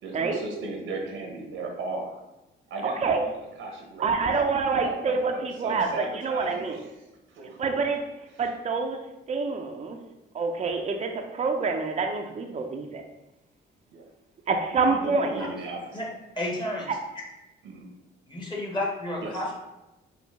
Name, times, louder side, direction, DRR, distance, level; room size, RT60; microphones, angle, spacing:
voice 1, 0.0-2.2 2.7-4.3 4.8-6.8 7.3-7.6 10.9-11.1 13.9-14.0 14.9-16.1 17.6-17.9 19.2-19.3, right 3 dB, 80° right, 1 dB, 0.9 m, -36 dB
voice 2, 2.8-3.2 4.0-6.8 7.6-8.0 8.4-9.0 9.3-10.0 10.3-13.0 14.5-15.5 16.9-17.0, right 4 dB, 35° right, 3 dB, 0.5 m, -27 dB
voice 3, 16.4-16.9 18.3-19.5, left 1 dB, 20° left, -3 dB, 1.4 m, -31 dB
5.1 x 2.4 x 3.5 m, 0.98 s
cardioid pair, 90°, 20 cm